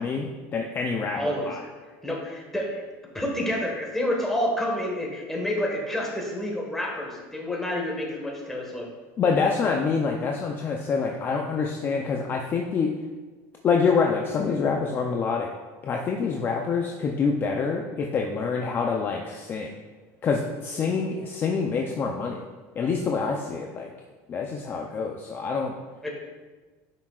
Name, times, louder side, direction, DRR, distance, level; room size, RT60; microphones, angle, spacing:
voice 1, 0.0-1.6 9.2-12.9 13.6-15.5 15.8-19.7 20.2-22.4 22.8-23.9 24.3-25.7, left 5 dB, 30° left, 1 dB, 0.6 m, -26 dB
voice 2, 1.2-1.5 2.0-2.8 3.1-8.9 20.8-20.9 26.0-26.1, left 1 dB, 5° left, -1 dB, 1.5 m, -29 dB
10.5 x 5.9 x 2.4 m, 1.3 s
supercardioid pair, 140°, 7 cm